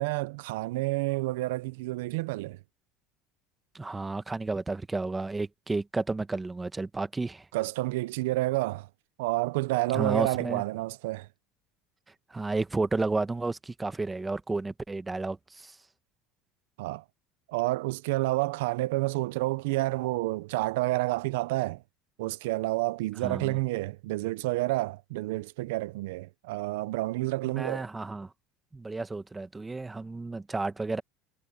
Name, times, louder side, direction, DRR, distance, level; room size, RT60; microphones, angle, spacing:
voice 1, 0.0-2.6 7.5-8.9 9.2-11.3 16.8-17.0 17.5-21.8 22.2-27.8, right 20 dB, 85° right, 0.5 m, -29 dB
voice 2, 3.7-7.5 9.9-10.6 12.3-15.8 23.2-23.6 27.4-28.3 28.7-31.0, right 3 dB, 15° right, 1.1 m, -32 dB
supercardioid pair, 125°, 0 cm